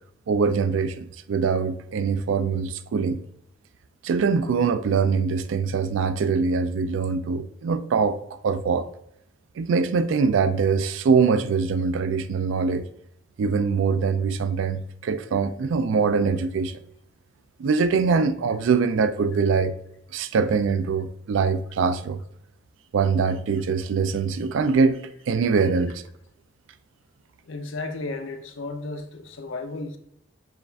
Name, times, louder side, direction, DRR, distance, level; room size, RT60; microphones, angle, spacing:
voice 1, 0.3-3.2 4.0-8.9 9.6-12.8 13.4-16.8 17.6-19.8 20.1-22.2 22.9-26.0, right 5 dB, 70° right, 0.3 m, -23 dB
voice 2, 27.4-30.0, left 3 dB, 75° left, 0.6 m, -34 dB
4.9 x 2.4 x 3.3 m
head